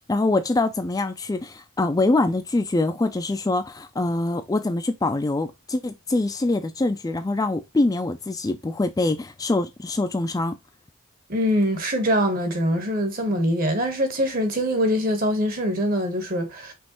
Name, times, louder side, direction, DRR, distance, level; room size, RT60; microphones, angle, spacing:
voice 1, 0.1-10.5, left 2 dB, 15° left, 0.3 m, -24 dB
voice 2, 11.3-16.7, equal, 40° right, 1.1 m, -23 dB
5.3 x 3.1 x 2.9 m
head